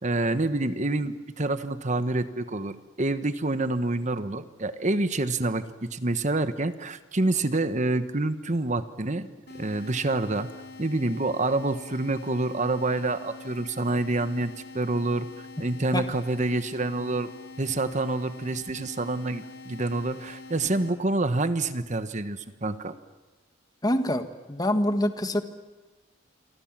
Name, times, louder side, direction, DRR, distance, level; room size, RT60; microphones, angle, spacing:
voice 1, 0.0-9.3 9.5-10.5 10.8-15.3 15.6-17.3 17.6-22.9, right 2 dB, 40° right, 11 dB, 1.2 m, -27 dB
sound 1, 9.5-20.9, left 3 dB, 60° left, 4.5 m, -44 dB
voice 2, 23.8-25.4, left 1 dB, 20° left, 8 dB, 1.6 m, -25 dB
28.0 x 24.5 x 7.5 m, 1.2 s
head